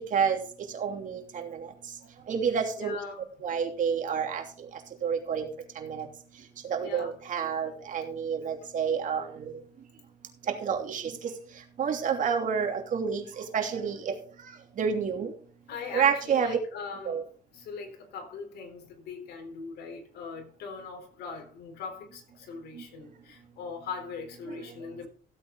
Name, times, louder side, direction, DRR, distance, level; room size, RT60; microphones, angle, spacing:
voice 1, 0.7-1.6 2.3-3.0 3.4-4.4 5.0-5.5 5.8-6.0 6.7-9.5 10.6-11.1 11.8-13.2 13.5-14.1 14.8-15.3 15.9-16.6 17.1-17.2, right 7 dB, 50° right, 3.0 m, -28 dB
voice 2, 2.7-3.3 6.8-7.1 15.7-17.3 17.5-25.1, left 5 dB, 75° left, 4.0 m, -40 dB
16.0 x 8.5 x 3.9 m
cardioid pair, 110°, 17 cm